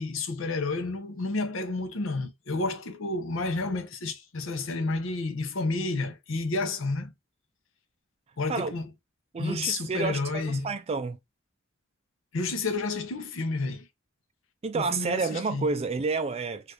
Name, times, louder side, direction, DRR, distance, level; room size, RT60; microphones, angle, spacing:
voice 1, 0.0-7.1 8.4-8.9 9.4-10.7 12.3-13.9 14.7-15.7, left 3 dB, 70° left, 0.7 m, -30 dB
voice 2, 9.3-11.2 14.6-16.7, right 4 dB, 30° right, 0.4 m, -30 dB
2.8 x 2.4 x 3.2 m
head